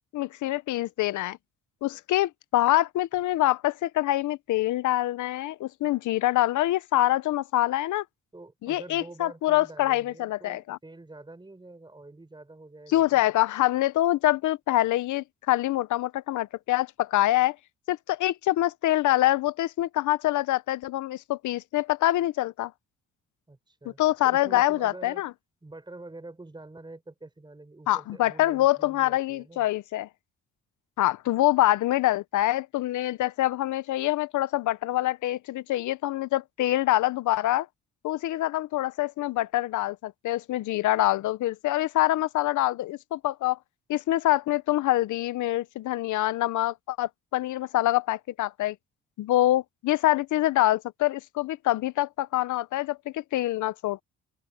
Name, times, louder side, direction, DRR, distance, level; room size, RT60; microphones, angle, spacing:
voice 1, 0.1-1.4 1.8-8.0 8.6-10.8 12.9-17.6 17.9-22.7 24.0-25.3 27.9-30.1 31.0-37.7 38.0-43.6 43.9-48.8 49.2-54.0, left 15 dB, 75° left, 0.8 m, -25 dB
voice 2, 8.3-13.3 23.5-24.0 24.2-25.3 25.6-29.7, right 2 dB, 15° right, 5.4 m, -46 dB
open air
cardioid pair, 90°, 30 cm